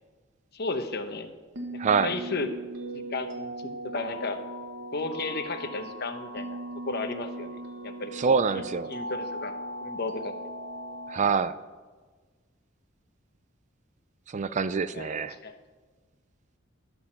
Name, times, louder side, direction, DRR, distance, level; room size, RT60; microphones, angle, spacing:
voice 1, 0.5-1.3 1.7-2.5 2.9-4.4 4.9-6.6 6.8-10.3 14.9-15.2 15.4-15.6, left 3 dB, 50° left, 8 dB, 1.0 m, -34 dB
sound 1, 1.5-11.2, right 1 dB, 60° right, 1.5 m, -38 dB
voice 2, 1.8-2.2 8.1-8.9 11.1-11.5 14.3-15.4, right 5 dB, 35° right, 14 dB, 0.4 m, -25 dB
12.0 x 6.6 x 7.2 m, 1.4 s
head